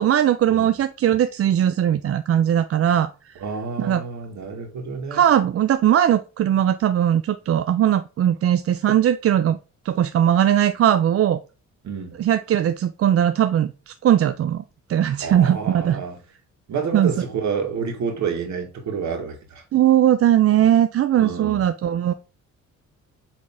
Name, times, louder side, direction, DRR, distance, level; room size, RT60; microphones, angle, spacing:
voice 1, 0.0-3.4 3.8-4.0 5.1-9.6 9.8-11.4 12.2-14.6 14.9-16.0 16.9-17.1 19.7-22.1, right 10 dB, 50° right, 0.5 m, -19 dB
voice 2, 3.4-5.3 11.8-12.1 15.2-16.2 16.7-19.6 21.2-21.6, right 6 dB, 65° right, 2.2 m, -29 dB
7.7 x 3.7 x 3.8 m
cardioid pair, 90°, 30 cm